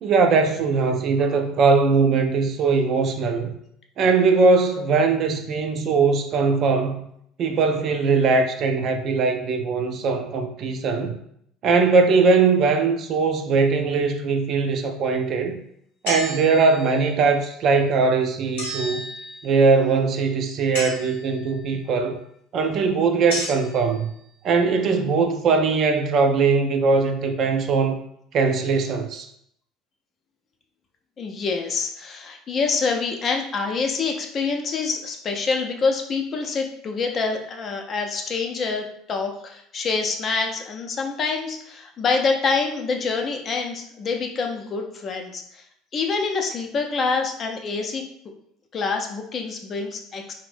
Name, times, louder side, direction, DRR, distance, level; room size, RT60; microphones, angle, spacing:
voice 1, 0.0-3.5 4.0-7.1 7.4-11.2 11.6-15.6 16.0-19.0 19.4-22.2 22.5-24.1 24.4-28.0 28.3-29.3, right 4 dB, 55° right, 0.4 m, -20 dB
sound 1, 16.1-17.1 18.6-19.7 20.7-21.5 23.3-23.9, left 1 dB, 85° left, 0.8 m, -32 dB
voice 2, 31.2-45.6 45.9-48.0 48.7-50.3, left 4 dB, 40° left, 0.5 m, -26 dB
2.5 x 2.0 x 3.3 m
hypercardioid pair, 75°, 0 cm